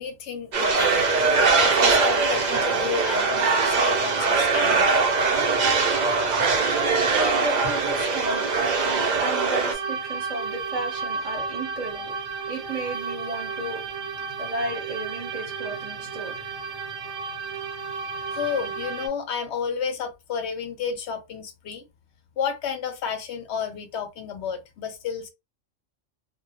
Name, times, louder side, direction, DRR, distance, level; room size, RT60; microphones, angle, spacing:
voice 1, 0.0-5.0 18.3-21.8 22.4-25.3, left 7 dB, 65° left, 0.8 m, -31 dB
sound 1, 0.5-9.7, right 4 dB, 60° right, 0.4 m, -22 dB
sound 2, 0.7-19.1, right 5 dB, 85° right, 1.0 m, -33 dB
voice 2, 7.1-12.2 12.5-13.9 14.4-16.4, right 2 dB, 30° right, 0.8 m, -34 dB
2.2 x 2.1 x 2.8 m
omnidirectional pair, 1.3 m